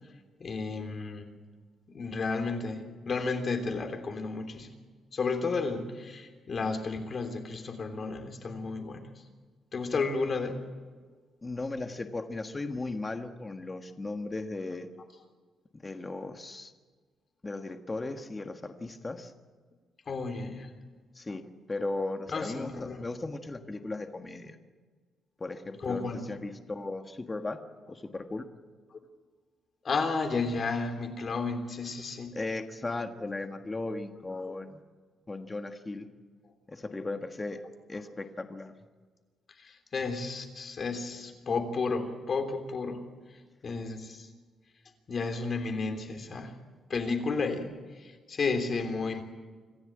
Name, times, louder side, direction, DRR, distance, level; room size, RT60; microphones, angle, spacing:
voice 1, 0.4-1.3 1.9-4.7 5.1-9.0 9.7-10.6 20.1-20.7 22.3-23.0 25.8-26.2 29.8-32.4 34.4-34.5 39.6-43.0 43.6-44.3 45.1-46.5 46.9-49.2, left 4 dB, 40° left, 6 dB, 3.3 m, -32 dB
voice 2, 11.4-14.9 15.7-16.7 17.4-19.3 21.1-22.7 23.0-24.6 25.4-27.6 27.9-28.4 32.3-34.8 35.3-36.1 36.7-37.6 37.9-38.7, left 2 dB, 20° left, 6 dB, 1.5 m, -36 dB
26.0 x 15.0 x 8.8 m, 1.5 s
cardioid pair, 140°, 0 cm